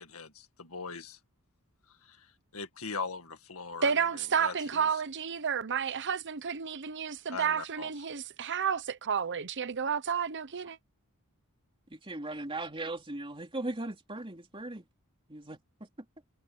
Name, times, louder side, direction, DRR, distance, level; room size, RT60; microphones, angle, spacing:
voice 1, 0.0-1.2 2.0-2.3 2.5-4.1 4.4-4.9 7.3-7.9, left 4 dB, 75° left, 2.0 m, -40 dB
voice 2, 3.8-10.8, right 7 dB, 55° right, 0.9 m, -31 dB
voice 3, 11.9-14.9 15.3-15.9, right 2 dB, 25° right, 3.3 m, -38 dB
head